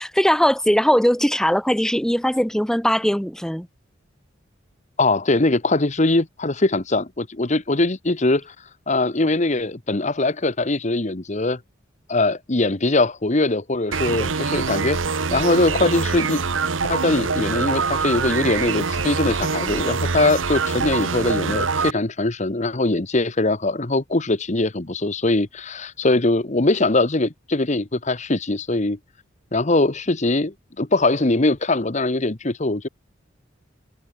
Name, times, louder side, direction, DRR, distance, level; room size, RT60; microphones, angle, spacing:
voice 1, 0.0-3.7, equal, 5° left, 1.3 m, -20 dB
voice 2, 5.0-8.5 8.9-11.6 12.1-16.4 16.9-29.0 29.5-32.9, left 2 dB, 35° left, 1.2 m, -21 dB
sound 1, 13.9-21.9, right 4 dB, 85° right, 1.2 m, -24 dB
head